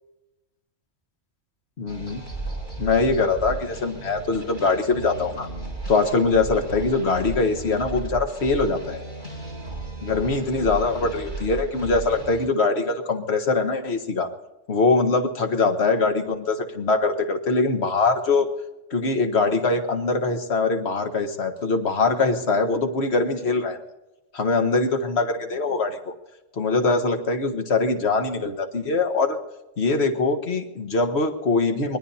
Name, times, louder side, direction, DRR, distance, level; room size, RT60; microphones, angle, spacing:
voice 1, 1.8-2.2 2.8-5.5 5.9-9.0 10.0-14.3 14.7-18.5 18.9-23.8 24.3-26.1 26.6-29.4 29.8-32.0, left 3 dB, 60° left, 7 dB, 1.6 m, -22 dB
sound 1, 1.9-12.5, right 2 dB, 45° left, 6.4 m, -35 dB
24.5 x 20.5 x 2.8 m, 1.0 s
omnidirectional pair, 1.3 m